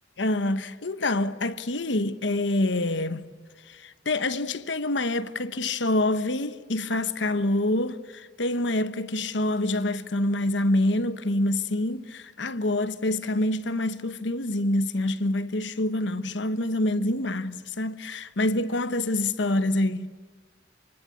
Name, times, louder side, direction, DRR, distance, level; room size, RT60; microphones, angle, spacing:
voice 1, 0.2-3.3 3.7-20.1, left 1 dB, 75° left, 1.1 m, -26 dB
27.0 x 25.0 x 8.4 m
head